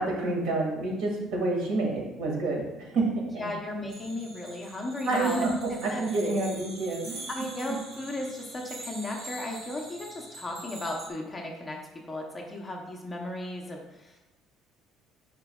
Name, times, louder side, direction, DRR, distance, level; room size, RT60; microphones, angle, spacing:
voice 1, 0.0-3.5 5.1-7.3, right 2 dB, 70° right, -1 dB, 1.9 m, -28 dB
voice 2, 3.4-5.6 5.9-6.0 7.3-14.2, left 1 dB, 10° left, 0 dB, 0.7 m, -35 dB
sound 1, 3.9-11.1, right 2 dB, 40° right, 1.0 m, -44 dB
9.4 x 5.0 x 2.3 m, 1.0 s
cardioid pair, 170°, 0 cm